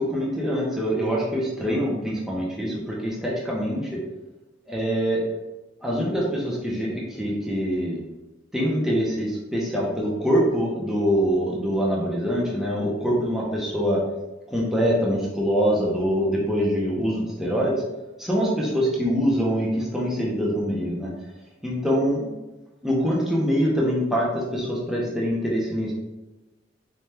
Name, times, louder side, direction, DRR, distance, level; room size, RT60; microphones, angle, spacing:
voice 1, 0.0-4.0 4.7-5.3 5.8-8.0 8.5-14.0 14.5-17.8 18.2-21.3 21.6-22.3 22.8-25.9, equal, ahead, -5 dB, 0.6 m, -24 dB
4.2 x 2.3 x 3.3 m, 1.1 s
head